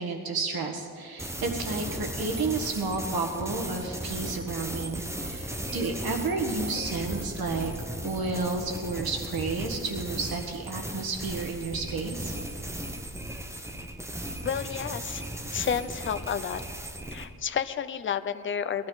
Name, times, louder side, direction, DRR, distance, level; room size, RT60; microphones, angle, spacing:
voice 1, 0.0-7.7 8.0-12.3, right 3 dB, 80° right, 2 dB, 1.7 m, -31 dB
sound 1, 1.2-17.3, right 1 dB, 10° right, 0.8 m, -36 dB
voice 2, 14.4-15.2 15.5-16.6 17.1-18.9, left 8 dB, 35° left, 11 dB, 0.5 m, -31 dB
20.0 x 12.5 x 4.0 m, 2.2 s
wide cardioid pair, 175°, 36 cm